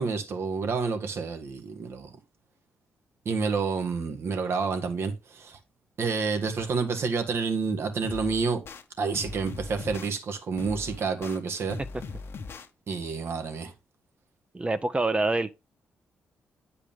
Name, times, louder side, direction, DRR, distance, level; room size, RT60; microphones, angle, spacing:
voice 1, 0.0-2.1 3.2-5.6 6.0-8.6 9.0-11.8 12.9-13.7, right 5 dB, 60° right, 1.6 m, -29 dB
sound 1, 8.0-8.8 9.1-10.1 10.6-11.4 11.7-12.7, left 4 dB, 60° left, 1.1 m, -39 dB
voice 2, 14.5-15.5, right 2 dB, 25° right, 0.7 m, -26 dB
8.8 x 4.9 x 3.6 m
supercardioid pair, 55°, 5 cm